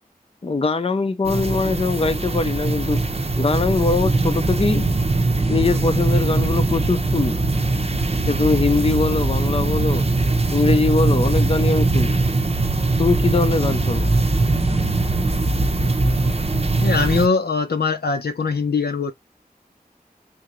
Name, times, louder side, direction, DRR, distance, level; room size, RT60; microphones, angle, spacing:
voice 1, 0.4-3.0 3.4-4.9 5.5-7.4 8.3-10.0 10.5-12.2 13.0-14.1, left 3 dB, 35° left, 0.5 m, -22 dB
sound 1, 1.2-17.3, right 2 dB, 40° right, 0.7 m, -21 dB
voice 2, 16.8-19.1, left 4 dB, 85° left, 0.8 m, -21 dB
3.7 x 2.8 x 3.0 m
wide cardioid pair, 60°, 16 cm